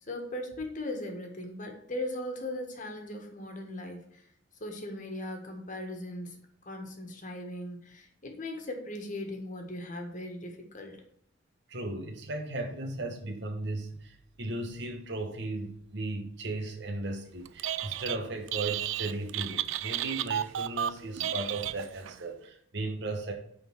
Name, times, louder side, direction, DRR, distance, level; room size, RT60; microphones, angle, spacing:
voice 1, 0.0-4.2 4.6-6.4 6.6-11.0, left 1 dB, 40° left, 3 dB, 1.5 m, -38 dB
voice 2, 11.7-23.3, right 2 dB, 60° right, 3 dB, 1.1 m, -36 dB
Telephone, 17.5-18.2 18.5-22.2, right 11 dB, 80° right, 0.4 m, -33 dB
9.0 x 3.9 x 6.1 m, 0.68 s
head